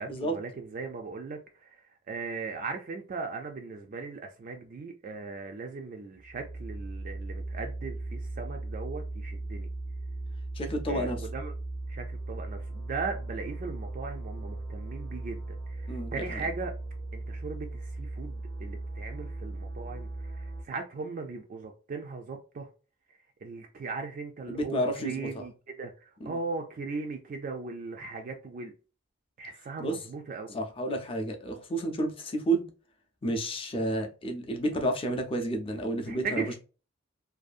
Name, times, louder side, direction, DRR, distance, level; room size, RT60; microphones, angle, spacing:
voice 1, 0.0-9.7 10.9-11.5 11.9-16.7 17.1-22.7 23.4-28.7 29.4-30.5 36.1-36.6, right 4 dB, 40° right, 0.3 m, -38 dB
sound 1, 6.2-20.6, right 2 dB, 85° right, 0.7 m, -38 dB
voice 2, 10.5-11.2 15.9-16.4 24.5-25.5 26.2-26.4 29.8-30.0 30.5-32.6 33.2-36.6, right 1 dB, 25° left, 0.5 m, -31 dB
2.6 x 2.3 x 2.4 m
head